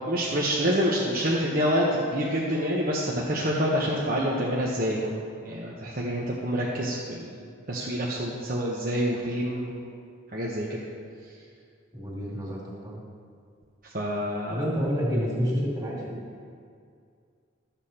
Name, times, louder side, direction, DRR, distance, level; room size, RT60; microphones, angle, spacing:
voice 1, 0.0-5.1 5.4-7.4 7.7-9.8 10.3-10.8 13.8-14.6, equal, 45° right, -4 dB, 1.0 m, -27 dB
voice 2, 11.9-13.0 14.5-16.2, equal, 20° right, -5 dB, 2.4 m, -29 dB
13.0 x 7.3 x 4.3 m, 2.2 s
head